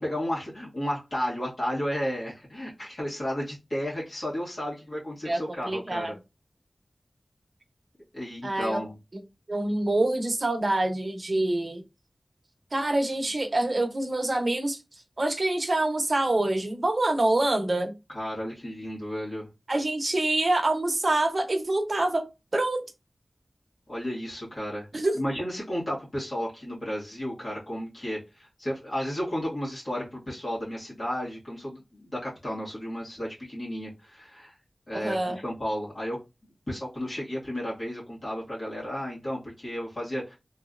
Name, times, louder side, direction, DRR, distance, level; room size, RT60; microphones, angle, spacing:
voice 1, 0.0-6.2 8.1-9.0 18.1-19.5 23.9-24.9 25.1-34.6 34.9-36.2 36.7-40.4, equal, 50° left, -6 dB, 1.6 m, -33 dB
voice 2, 5.2-6.1 8.4-8.8 9.1-9.2 9.5-11.8 12.7-14.8 15.2-17.9 19.7-22.2 22.5-22.8 24.9-25.2 34.9-35.4, right 2 dB, 50° right, 5 dB, 0.7 m, -26 dB
3.0 x 2.7 x 2.4 m, 0.25 s
wide cardioid pair, 60°, 0 cm